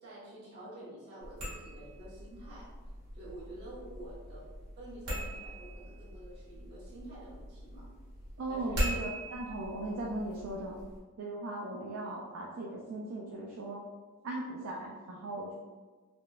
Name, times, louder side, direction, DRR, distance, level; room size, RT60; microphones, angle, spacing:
voice 1, 0.0-2.8 3.1-4.5 4.7-7.9 8.5-8.9, right 1 dB, 50° right, -9 dB, 1.2 m, -49 dB
sound 1, 1.2-11.0, equal, 90° right, 1.2 m, -41 dB
voice 2, 8.4-10.7 11.2-13.8 14.2-15.5, right 2 dB, 70° right, -3 dB, 0.4 m, -38 dB
3.5 x 2.3 x 2.3 m, 1.4 s
head